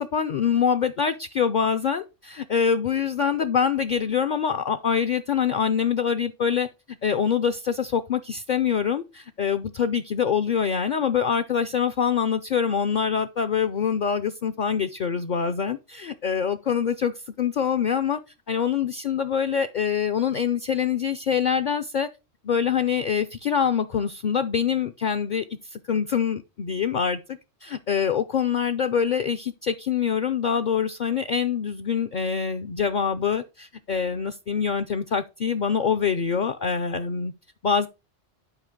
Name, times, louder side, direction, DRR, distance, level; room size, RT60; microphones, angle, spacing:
voice 1, 0.0-6.7 7.0-18.2 18.5-22.1 22.4-25.4 25.7-37.3 37.6-37.9, left 7 dB, 55° left, 10 dB, 0.6 m, -25 dB
8.9 x 5.0 x 3.7 m, 0.27 s
omnidirectional pair, 1.2 m